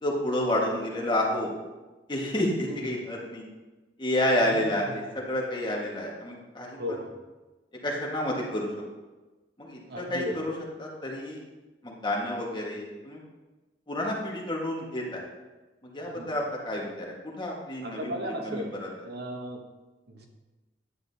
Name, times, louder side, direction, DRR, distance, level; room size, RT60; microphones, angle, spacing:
voice 1, 0.0-1.5 2.1-3.4 4.0-7.0 7.8-8.7 9.6-10.5 10.8-11.4 11.8-13.2 13.9-15.2 15.8-18.1 18.4-18.9, left 1 dB, 25° left, -2 dB, 1.5 m, -30 dB
voice 2, 2.7-3.0 4.5-5.0 6.7-7.1 9.9-10.5 16.1-16.3 17.8-18.7 19.0-19.6 20.1-20.3, equal, 65° right, 2 dB, 1.0 m, -36 dB
9.9 x 8.1 x 2.8 m, 1.2 s
head